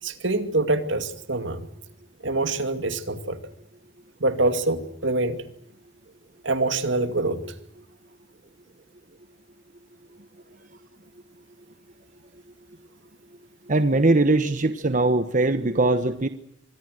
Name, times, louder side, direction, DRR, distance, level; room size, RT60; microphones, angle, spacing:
voice 1, 0.0-1.7 2.2-3.4 4.2-5.4 6.4-7.4, right 2 dB, 75° right, 9 dB, 2.5 m, -25 dB
voice 2, 13.7-16.3, right 2 dB, 45° right, 10 dB, 1.2 m, -21 dB
25.5 x 21.0 x 6.6 m, 0.74 s
head